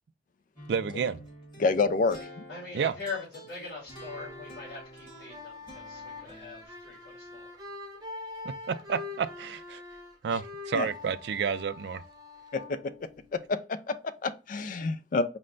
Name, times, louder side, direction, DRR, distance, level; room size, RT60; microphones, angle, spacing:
sound 1, 0.6-6.7, equal, 25° left, 1.5 m, -49 dB
voice 1, 0.7-1.2 2.7-2.9 8.4-9.8 10.2-12.0, right 6 dB, 65° right, 0.3 m, -30 dB
voice 2, 1.6-2.4 10.7-10.9 12.5-12.8 13.3-14.0 14.2-15.2, left 3 dB, 45° left, 0.3 m, -28 dB
voice 3, 2.5-7.5, left 4 dB, 60° left, 2.0 m, -41 dB
sound 2, 3.8-13.6, left 3 dB, 20° right, 0.7 m, -44 dB
4.3 x 2.1 x 3.7 m
head